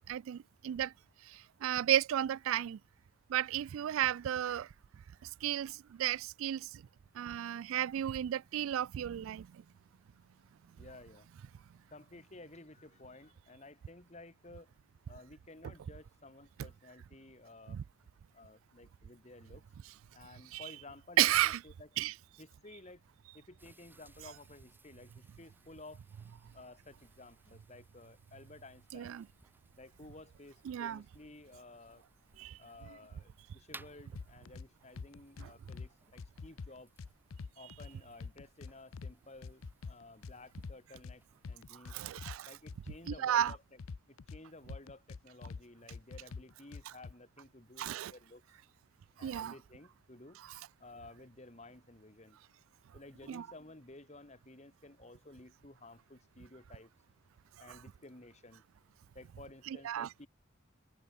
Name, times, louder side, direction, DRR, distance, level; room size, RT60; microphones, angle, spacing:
voice 1, 0.1-0.9 1.3-2.8 3.3-4.7 5.4-6.7 7.2-9.5 17.7-17.8 20.5-20.6 21.2-21.6 22.0-22.1 28.9-29.2 30.7-31.0 32.4-32.6 41.9-42.5 43.1-43.5 47.8-48.1 49.2-49.5 53.3-53.4 59.8-60.1, right 11 dB, 75° right, 0.3 m, -33 dB
voice 2, 10.8-11.3 11.9-14.7 15.1-17.8 18.3-19.6 20.1-21.9 22.4-23.0 23.3-26.0 26.5-29.2 29.8-32.0 32.6-36.9 37.5-42.0 42.5-43.8 44.1-48.4 49.2-50.4 50.8-52.4 52.9-56.9 57.6-58.6 59.1-60.3, left 2 dB, 30° left, 1.7 m, -54 dB
sound 1, 23.6-43.0, right 2 dB, 10° right, 6.0 m, -63 dB
sound 2, 34.2-34.7 35.0-35.9 36.2-37.9 38.2-39.1 39.4-41.2 41.4-42.4 42.7-44.4 44.7-45.6 45.9-47.1, left 4 dB, 75° left, 0.5 m, -45 dB
head